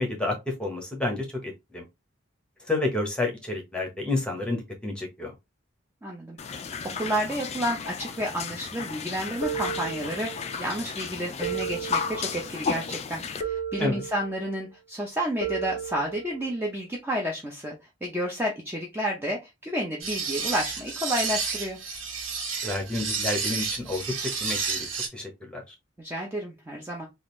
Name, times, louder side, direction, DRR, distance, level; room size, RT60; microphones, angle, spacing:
voice 1, 0.0-1.8 2.7-5.3 13.8-14.0 22.6-25.6, left 2 dB, 5° left, 1.0 m, -30 dB
voice 2, 6.0-6.6 7.0-17.7 18.0-21.8 26.0-27.1, equal, 10° right, 0.6 m, -31 dB
sound 1, 6.4-13.4, left 5 dB, 35° left, 0.3 m, -34 dB
sound 2, 9.4-10.6 11.4-12.6 13.4-14.6 15.4-16.6, right 7 dB, 30° right, 1.7 m, -34 dB
sound 3, 20.0-25.1, right 5 dB, 85° right, 1.2 m, -31 dB
3.7 x 2.5 x 3.1 m
head